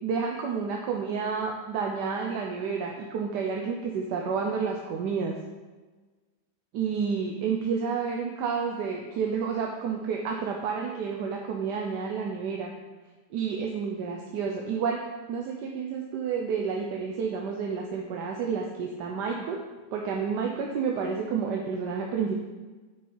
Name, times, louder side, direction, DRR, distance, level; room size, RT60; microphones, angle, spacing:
voice 1, 0.0-5.3 6.7-12.7 13.3-15.0 15.3-19.6 19.9-22.3, right 6 dB, 75° right, 1 dB, 1.2 m, -30 dB
6.1 x 5.4 x 4.5 m, 1.3 s
omnidirectional pair, 1.9 m